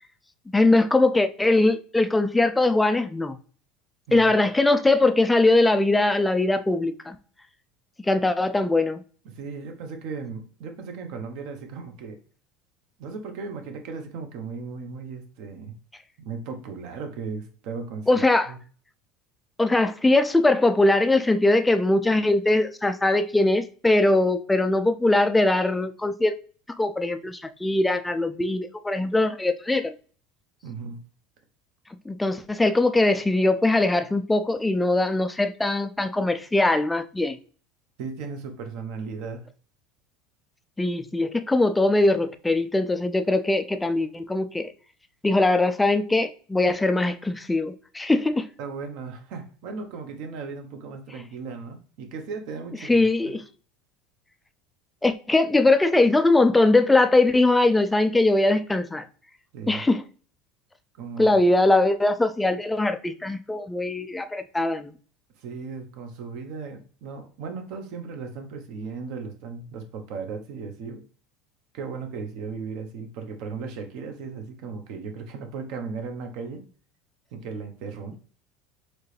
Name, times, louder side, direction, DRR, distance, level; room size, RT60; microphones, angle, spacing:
voice 1, 0.5-3.4 4.1-7.2 8.0-9.0 18.1-18.5 19.6-26.3 26.8-29.9 32.1-37.4 40.8-44.7 45.2-48.5 52.9-53.4 55.0-59.1 59.7-60.0 61.2-64.9, left 2 dB, 5° left, 0.3 m, -21 dB
voice 2, 9.2-12.2 13.0-15.8 16.2-18.6 30.6-31.0 38.0-39.4 48.6-53.4 59.5-59.8 61.0-61.4 65.4-71.0 71.7-76.6 77.3-78.2, right 5 dB, 60° right, 1.0 m, -36 dB
4.5 x 3.3 x 3.3 m
cardioid pair, 150°, 0 cm